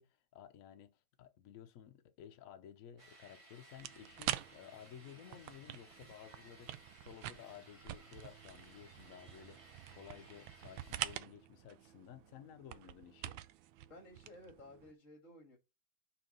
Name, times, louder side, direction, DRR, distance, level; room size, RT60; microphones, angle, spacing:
voice 1, 0.0-13.4, left 9 dB, 65° left, 0.8 m, -55 dB
sound 1, 3.0-11.2, right 2 dB, 20° right, 1.2 m, -61 dB
sound 2, 3.8-14.9, right 13 dB, 85° right, 1.4 m, -46 dB
voice 2, 13.9-15.6, left 1 dB, 40° left, 2.6 m, -55 dB
5.7 x 4.7 x 5.3 m
omnidirectional pair, 2.1 m